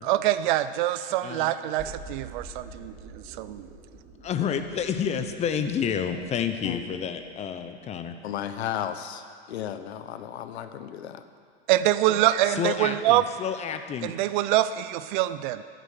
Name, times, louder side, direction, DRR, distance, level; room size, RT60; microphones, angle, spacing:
voice 1, 0.0-3.7 11.7-13.2 14.0-15.6, right 14 dB, 50° right, 14 dB, 0.6 m, -25 dB
voice 2, 1.2-1.5 4.2-8.1 12.5-14.1, left 7 dB, 20° left, 8 dB, 0.8 m, -29 dB
sound 1, 1.8-7.7 8.1-8.2, right 2 dB, 30° right, 2.4 m, -47 dB
voice 3, 8.2-11.2, left 10 dB, 75° left, 10 dB, 1.1 m, -34 dB
14.0 x 9.1 x 6.6 m, 2.2 s
hypercardioid pair, 130°, 33 cm